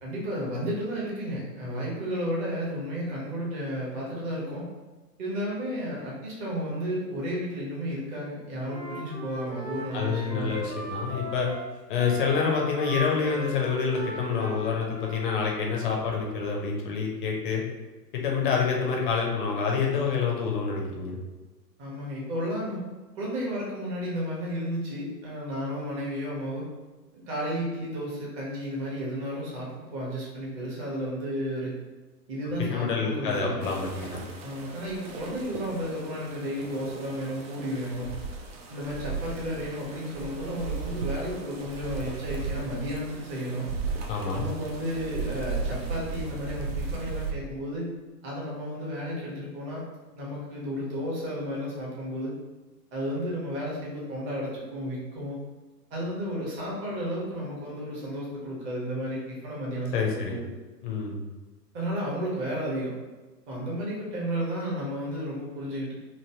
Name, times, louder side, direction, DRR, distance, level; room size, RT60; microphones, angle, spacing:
voice 1, 0.0-4.7 5.2-10.6 21.8-22.8 23.1-26.7 27.3-31.7 32.3-33.7 34.4-38.1 38.7-43.7 44.3-47.9 48.2-49.9 50.1-52.3 52.9-55.4 55.9-60.5 61.7-62.9 63.5-65.9, equal, 25° right, -4 dB, 1.0 m, -33 dB
Wind instrument woodwind instrument, 8.6-15.3, equal, 75° right, 1.2 m, -38 dB
voice 2, 9.9-11.5 11.9-17.6 18.1-21.2 32.6-34.2 44.1-44.5 59.9-60.4 60.8-61.2, left 5 dB, 30° left, -1 dB, 0.6 m, -27 dB
sound 1, 33.6-47.3, right 4 dB, 40° right, 0.5 m, -36 dB
3.1 x 2.5 x 2.8 m, 1.2 s
figure-of-eight pair, 115°, 49 cm